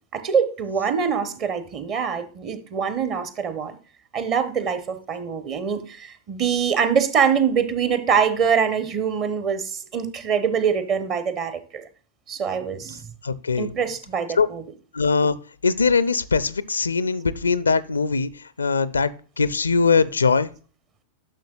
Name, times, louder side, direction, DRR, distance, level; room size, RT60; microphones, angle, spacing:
voice 1, 0.1-3.8 4.1-11.8 12.3-13.1 13.6-14.6, right 7 dB, 35° right, 1.0 m, -24 dB
voice 2, 13.2-13.7 14.4-14.5 14.9-15.4 15.6-18.3 18.6-20.5, left 4 dB, 75° left, 0.4 m, -21 dB
11.0 x 6.3 x 2.4 m
figure-of-eight pair, 90°, 0 cm